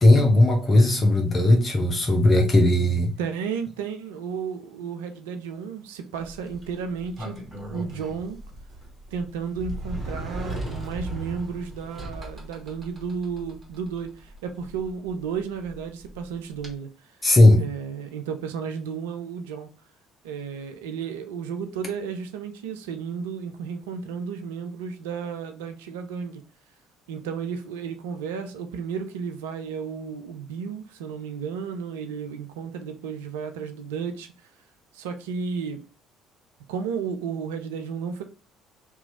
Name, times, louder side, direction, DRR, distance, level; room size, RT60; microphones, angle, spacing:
voice 1, 0.0-3.1 17.2-17.6, left 1 dB, 30° left, 0.9 m, -17 dB
voice 2, 3.2-7.4 7.7-8.4 9.1-16.9 17.6-19.7 20.2-26.4 27.1-34.3 34.9-35.8 36.7-38.2, right 6 dB, 75° right, 0.4 m, -33 dB
Sliding door, 6.1-16.7, right 1 dB, 25° right, 1.4 m, -38 dB
2.9 x 2.3 x 4.1 m
figure-of-eight pair, 50°, 0 cm